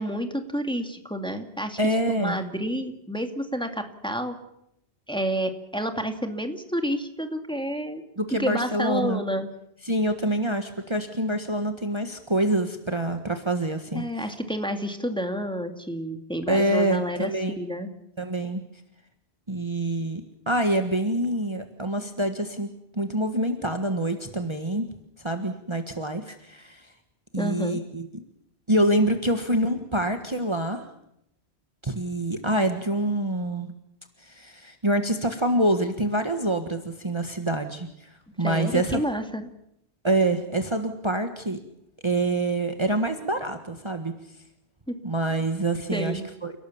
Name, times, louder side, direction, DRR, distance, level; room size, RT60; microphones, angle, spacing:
voice 1, 0.0-1.8 2.2-4.4 5.1-8.0 8.3-9.5 13.9-17.3 17.6-17.9 27.4-27.8 38.4-39.5 44.9-45.0 45.9-46.2, equal, 5° left, 6 dB, 2.3 m, -29 dB
voice 2, 1.8-2.4 8.2-9.2 9.8-14.3 16.5-17.6 18.2-18.6 19.5-24.9 25.2-26.9 27.3-28.2 28.7-30.9 31.8-33.7 34.2-39.0 40.0-41.6 42.0-44.1 45.0-46.5, right 1 dB, 25° right, 6 dB, 1.5 m, -26 dB
30.0 x 18.0 x 7.2 m, 0.80 s
omnidirectional pair, 1.1 m